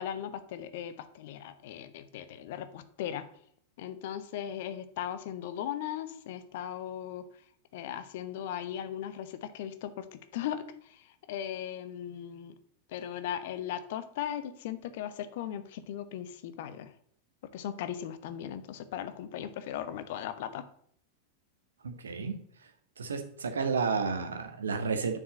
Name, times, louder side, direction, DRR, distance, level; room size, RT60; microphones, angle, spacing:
voice 1, 0.0-3.2 3.8-7.2 7.7-10.1 10.3-11.0 11.3-12.5 12.9-16.9 17.5-20.6, left 10 dB, 50° left, 12 dB, 1.0 m, -38 dB
voice 2, 21.8-22.7 23.0-25.2, right 5 dB, 70° right, 6 dB, 1.6 m, -32 dB
7.2 x 6.4 x 7.7 m, 0.64 s
figure-of-eight pair, 90°, 0 cm